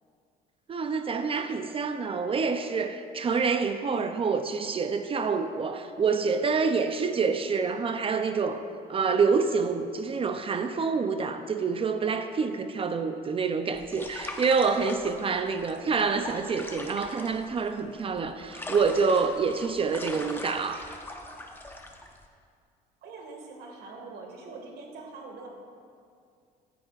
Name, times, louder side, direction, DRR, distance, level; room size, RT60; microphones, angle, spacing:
voice 1, 0.7-8.6 8.9-20.9, right 5 dB, 35° right, 8 dB, 0.5 m, -27 dB
sound 1, 13.7-22.2, left 1 dB, 10° left, 0.9 m, -41 dB
voice 2, 23.0-25.5, right 3 dB, 70° right, 1 dB, 1.9 m, -43 dB
14.5 x 9.9 x 2.5 m, 2.2 s
cardioid pair, 110°, 17 cm